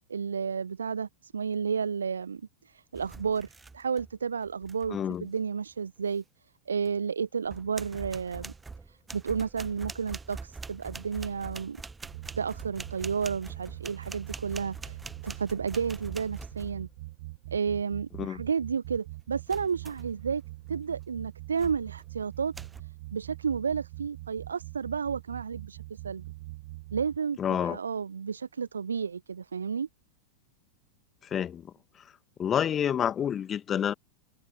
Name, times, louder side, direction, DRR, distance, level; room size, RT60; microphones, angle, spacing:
voice 1, 0.1-6.2 6.7-8.5 8.9-11.8 12.4-15.0 15.2-16.9 17.5-20.4 20.7-22.5 23.1-26.2 26.9-29.9, right 6 dB, 70° right, 1.0 m, -32 dB
sound 1, 2.9-4.2 4.4-4.9 6.9-7.0 7.4-17.0 19.5-20.2 20.7-20.9 21.6-22.0 22.5-22.8, right 4 dB, 10° right, 1.2 m, -44 dB
voice 2, 4.9-5.3 18.2-18.4 27.4-27.8 31.2-32.1 32.4-33.9, left 9 dB, 25° left, 2.0 m, -29 dB
sound 2, 12.0-27.2, right 20 dB, 50° right, 3.6 m, -43 dB
figure-of-eight pair, 90°, 0 cm